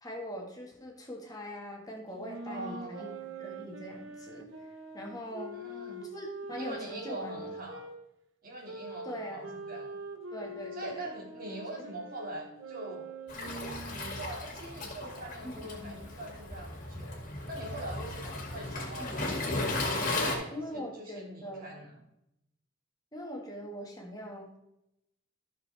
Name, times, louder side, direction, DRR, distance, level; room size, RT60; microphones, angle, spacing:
voice 1, 0.0-4.5 4.9-5.7 6.1-7.5 9.0-9.7 10.3-11.0 15.4-16.0 19.0-19.3 20.5-21.9 23.1-24.6, equal, 20° left, 0 dB, 1.7 m, -42 dB
sound 1, 2.1-7.9 8.6-14.1, right 2 dB, 85° right, 1.2 m, -44 dB
voice 2, 2.5-3.2 5.6-6.1 6.6-7.8 8.4-9.9 10.7-13.1 13.9-19.2 19.7-22.0, right 1 dB, 50° right, 0 dB, 2.3 m, -43 dB
Waves surf, 13.3-20.3, left 2 dB, 45° left, 2.3 m, -35 dB
13.5 x 6.4 x 3.4 m, 0.82 s
head